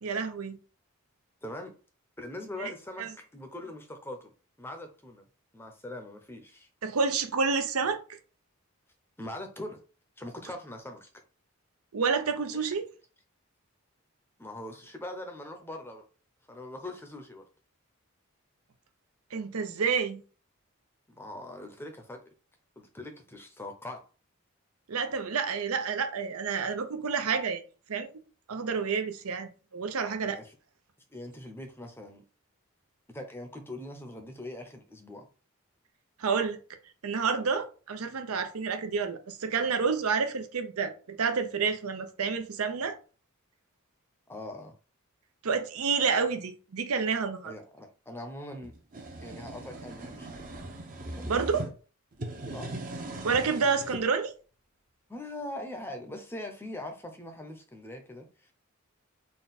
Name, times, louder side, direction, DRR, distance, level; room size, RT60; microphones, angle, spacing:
voice 1, 0.0-0.6 2.6-2.7 3.0-3.1 6.8-8.0 11.9-12.8 19.3-20.2 24.9-27.6 27.9-28.1 28.5-30.4 36.2-36.6 37.0-43.0 45.4-47.5 51.3-51.6 53.2-54.3, right 5 dB, 85° right, 0.6 m, -29 dB
voice 2, 1.4-1.7 2.2-4.3 4.6-5.3 5.5-6.7 9.2-9.8 10.2-11.1 12.5-12.8 14.4-16.0 16.5-17.4 21.1-22.2 22.8-24.0 30.2-30.5 31.1-32.2 33.1-35.3 44.3-44.7 47.4-48.7 49.2-50.6 51.1-51.4 52.5-52.7 55.1-58.5, left 1 dB, 10° left, 0.6 m, -42 dB
sound 1, 48.6-51.7 52.1-54.0, right 1 dB, 40° right, 0.7 m, -39 dB
3.9 x 2.3 x 4.0 m
head